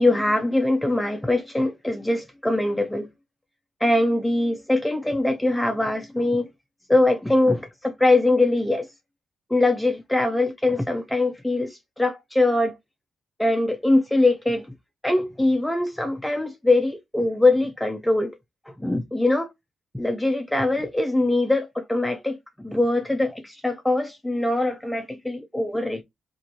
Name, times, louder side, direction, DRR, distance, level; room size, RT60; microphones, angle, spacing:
voice 1, 0.0-3.1 3.8-6.5 6.9-8.9 9.5-12.7 13.4-14.7 15.0-18.3 18.7-19.5 19.9-26.0, left 2 dB, 5° left, 0.4 m, -22 dB
2.9 x 2.5 x 2.6 m
cardioid pair, 75°, 0 cm